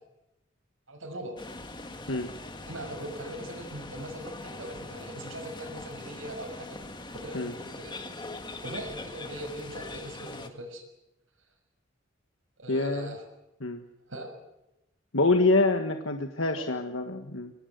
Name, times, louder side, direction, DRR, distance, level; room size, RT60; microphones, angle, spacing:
voice 1, 0.9-1.3 2.7-6.8 7.1-8.0 8.6-10.8 12.6-13.2 14.1-14.3 16.4-16.7, right 1 dB, 85° right, 3 dB, 6.0 m, -40 dB
sound 1, 1.4-10.5, left 2 dB, 25° left, 1.9 m, -42 dB
voice 2, 12.7-13.1 13.6-13.8 15.1-17.5, left 2 dB, 85° left, 5 dB, 1.6 m, -26 dB
25.0 x 19.0 x 9.5 m, 0.92 s
head